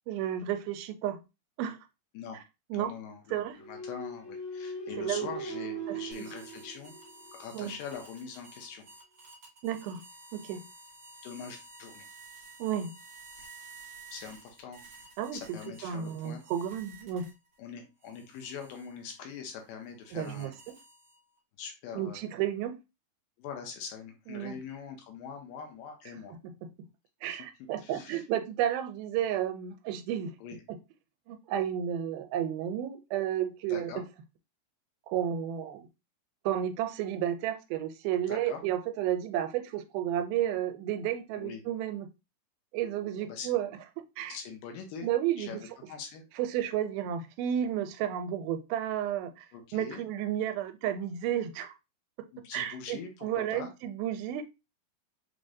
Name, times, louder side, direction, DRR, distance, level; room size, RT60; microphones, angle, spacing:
voice 1, 0.1-1.2 1.6-1.8 2.7-2.9 3.3-3.6 5.0-5.3 5.9-6.2 7.5-7.8 9.6-10.0 10.3-10.7 12.6-13.0 15.2-17.3 20.1-20.8 21.9-22.8 24.3-24.6 26.3-26.9 27.2-30.3 30.7-30.8 31.3-34.0 35.1-35.9 36.5-42.1 42.7-43.7 44.2-44.4 45.0-45.6 46.4-49.5 49.7-51.7 52.5-54.4, right 10 dB, 85° right, 9 dB, 2.4 m, -32 dB
voice 2, 2.7-6.9 7.3-8.8 11.2-12.1 14.1-14.8 15.3-16.4 17.6-20.5 21.6-22.2 23.4-26.4 27.3-28.2 30.4-30.6 33.7-34.0 38.3-38.6 41.4-41.6 43.2-43.5 44.3-45.1 45.4-46.2 49.5-50.0 52.3-53.7, left 6 dB, 80° left, 4 dB, 2.3 m, -43 dB
sound 1, 3.6-7.4, right 2 dB, 60° left, 1.0 m, -39 dB
sound 2, 6.1-17.6 18.0-21.4, right 3 dB, 70° right, 1.1 m, -53 dB
6.1 x 2.1 x 2.6 m, 0.26 s
omnidirectional pair, 4.2 m